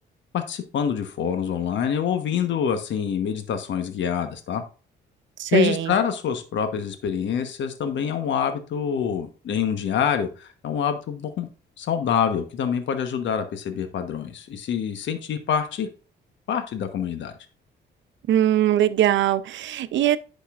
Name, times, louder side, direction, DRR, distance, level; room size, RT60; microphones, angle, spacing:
voice 1, 0.3-4.6 5.5-11.5 11.8-15.9 16.5-17.3, left 8 dB, 70° left, 1.1 m, -26 dB
voice 2, 5.4-5.9 18.3-20.2, right 12 dB, 70° right, 0.6 m, -21 dB
10.0 x 5.3 x 2.5 m
cardioid pair, 90°, 20 cm